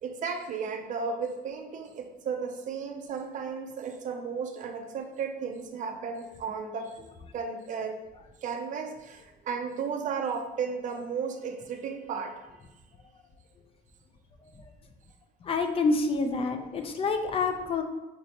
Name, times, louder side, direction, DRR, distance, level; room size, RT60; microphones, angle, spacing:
voice 1, 0.0-7.0 7.3-8.0 8.4-12.4, right 5 dB, 50° right, 6 dB, 0.4 m, -34 dB
voice 2, 15.4-17.8, left 4 dB, 35° left, 6 dB, 0.4 m, -27 dB
5.1 x 2.0 x 2.8 m, 1.1 s
cardioid pair, 110°, 17 cm